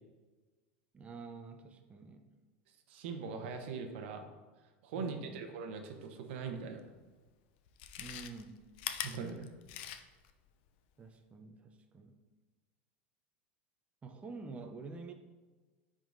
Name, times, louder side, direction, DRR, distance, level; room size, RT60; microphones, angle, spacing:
voice 1, 0.9-2.3 4.9-5.4 8.0-8.6 11.0-12.2 14.0-15.1, right 4 dB, 20° right, 6 dB, 0.5 m, -48 dB
voice 2, 2.9-4.3 4.8-6.8 9.0-9.5, right 5 dB, 75° right, 6 dB, 0.8 m, -41 dB
Chewing mastication, 6.9-7.0 7.7-10.3 10.7-10.8, left 11 dB, 65° left, 0.5 m, -42 dB
10.0 x 3.7 x 2.6 m, 1.3 s
supercardioid pair, 115°, 6 cm